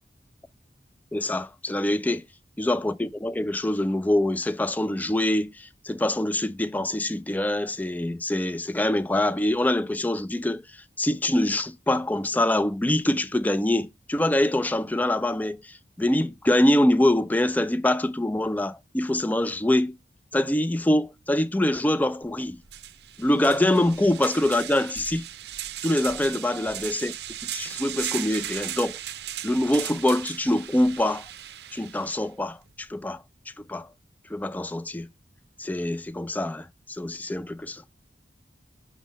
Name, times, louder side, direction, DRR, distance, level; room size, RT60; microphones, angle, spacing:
voice 1, 1.1-2.2 2.6-10.6 11.0-19.9 20.3-22.6 23.2-25.2 25.8-27.1 27.5-29.0 29.4-31.2 31.7-33.2 33.6-33.9 34.3-35.1 35.6-37.8, left 1 dB, 10° left, 0.3 m, -24 dB
sound 1, 22.2-22.3 22.7-32.2, right 12 dB, 65° right, 0.5 m, -37 dB
6.2 x 3.7 x 5.0 m
head